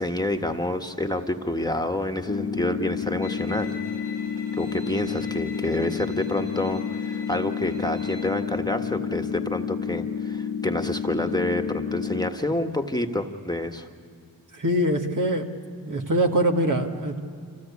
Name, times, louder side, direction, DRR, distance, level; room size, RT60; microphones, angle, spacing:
voice 1, 0.0-3.7 4.6-13.9, left 1 dB, 10° left, 5 dB, 1.6 m, -28 dB
sound 1, 2.3-12.3, left 7 dB, 40° left, 1.0 m, -30 dB
Bowed string instrument, 3.2-8.3, left 3 dB, 90° right, 3.5 m, -44 dB
voice 2, 14.5-15.5 15.9-17.2, right 1 dB, 55° right, 3 dB, 2.0 m, -23 dB
26.0 x 16.5 x 8.4 m, 2.4 s
cardioid pair, 45°, 38 cm